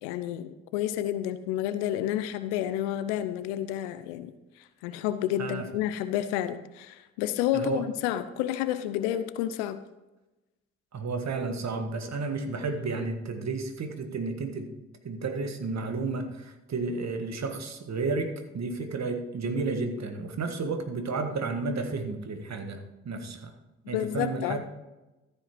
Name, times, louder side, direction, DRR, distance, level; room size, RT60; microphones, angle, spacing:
voice 1, 0.0-9.8 23.9-24.6, left 12 dB, 80° left, 12 dB, 0.6 m, -30 dB
voice 2, 10.9-14.7 15.0-23.5 23.9-24.6, right 4 dB, 50° right, 6 dB, 1.7 m, -32 dB
14.0 x 5.3 x 4.5 m, 1.0 s
hypercardioid pair, 40°, 35 cm